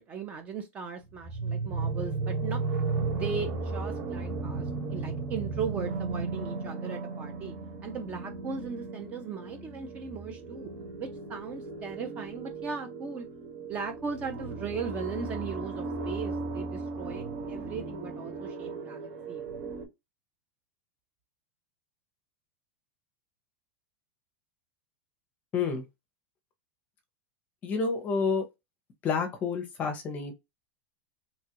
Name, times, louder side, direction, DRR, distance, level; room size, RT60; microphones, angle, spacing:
voice 1, 0.0-2.6 3.1-4.6 4.9-7.5 7.8-10.7 11.0-13.3 13.7-19.5, right 5 dB, 20° right, 0.4 m, -38 dB
sound 1, 1.1-19.8, right 3 dB, 50° right, 1.4 m, -35 dB
voice 2, 25.5-25.8 27.6-28.4 29.0-30.3, left 5 dB, 20° left, 0.7 m, -29 dB
2.9 x 2.3 x 2.8 m
supercardioid pair, 170°, 7 cm